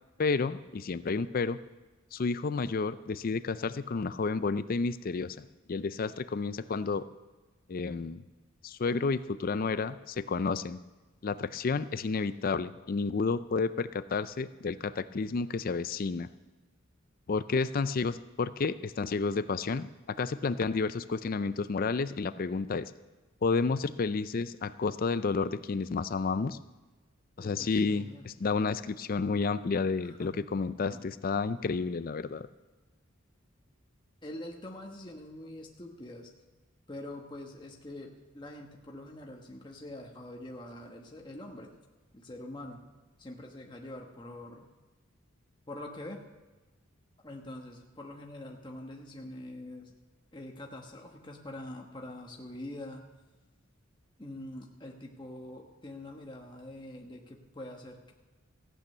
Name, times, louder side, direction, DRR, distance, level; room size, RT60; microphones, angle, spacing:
voice 1, 0.2-1.6 2.1-5.4 5.7-7.1 7.7-8.2 8.6-10.8 11.2-16.3 17.3-22.9 23.4-26.6 27.4-32.5, left 4 dB, 45° left, 14 dB, 0.4 m, -31 dB
voice 2, 27.4-28.3 30.0-30.5 30.9-31.0 34.2-36.3 36.9-41.7 42.1-42.8 43.2-44.6 45.7-46.2 47.2-49.9 50.3-53.1 54.2-58.1, left 1 dB, 20° left, 0 dB, 1.2 m, -44 dB
15.0 x 8.7 x 6.7 m, 1.2 s
head